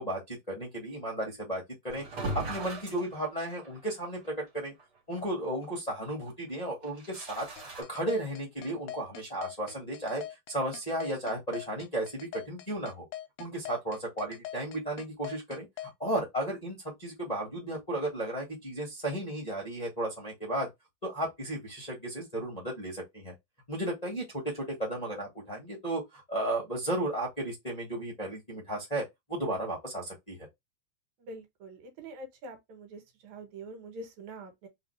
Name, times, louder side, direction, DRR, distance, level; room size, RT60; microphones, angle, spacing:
voice 1, 0.0-4.7 5.1-10.2 10.5-13.0 13.4-15.7 16.0-20.7 21.0-23.3 23.7-30.4, right 1 dB, 20° left, 1.0 m, -34 dB
sound 1, 1.9-3.9 4.3-4.4 4.8-4.9 6.8-7.8, right 2 dB, 40° right, 1.7 m, -38 dB
sound 2, 7.6-15.9, left 12 dB, 75° left, 1.7 m, -42 dB
voice 2, 31.2-34.7, right 2 dB, 75° right, 2.5 m, -45 dB
3.9 x 3.8 x 3.3 m
omnidirectional pair, 3.4 m